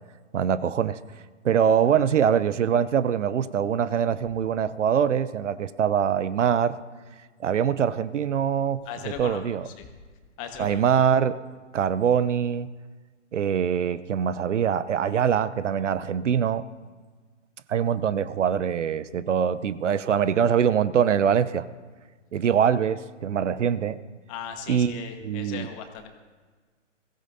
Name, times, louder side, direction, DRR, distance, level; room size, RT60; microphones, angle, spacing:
voice 1, 0.3-1.0 1.4-6.8 7.4-9.7 10.6-11.4 11.7-12.7 13.3-16.6 17.7-21.6 22.3-24.0 24.7-25.7, right 8 dB, 75° right, 16 dB, 0.7 m, -23 dB
voice 2, 8.8-9.9 10.4-10.8 24.3-26.1, left 7 dB, 25° left, 6 dB, 1.3 m, -38 dB
22.0 x 16.0 x 2.7 m, 1.4 s
hypercardioid pair, 140°, 37 cm